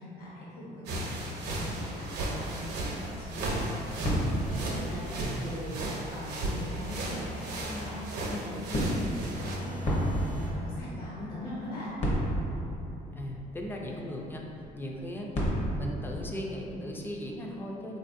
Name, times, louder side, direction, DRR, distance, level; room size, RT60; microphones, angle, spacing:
voice 1, 0.0-9.1 9.4-11.9, left 1 dB, 60° left, -10 dB, 1.2 m, -41 dB
sound 1, 0.8-9.6, right 1 dB, 75° right, 0.6 m, -35 dB
sound 2, 2.9-16.6, equal, 40° left, 0.8 m, -35 dB
sound 3, 4.3-5.6 6.7-8.1 9.2-10.6, equal, 75° left, 0.8 m, -41 dB
voice 2, 13.1-14.4 14.7-15.3 15.7-18.0, left 1 dB, 10° left, -1 dB, 0.3 m, -37 dB
3.6 x 2.5 x 2.5 m, 2.9 s
cardioid pair, 110°, 17 cm